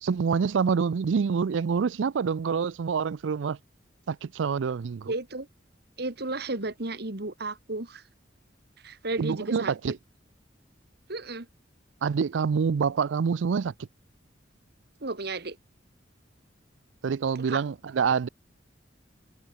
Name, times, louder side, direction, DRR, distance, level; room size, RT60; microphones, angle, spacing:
voice 1, 0.0-3.6 4.1-5.1 9.2-9.9 12.0-13.7 17.0-18.3, right 6 dB, 85° right, 0.4 m, -26 dB
voice 2, 5.1-5.5 6.0-8.0 8.8-10.0 11.1-11.5 15.0-15.6 17.4-17.6, right 2 dB, 60° right, 2.1 m, -33 dB
head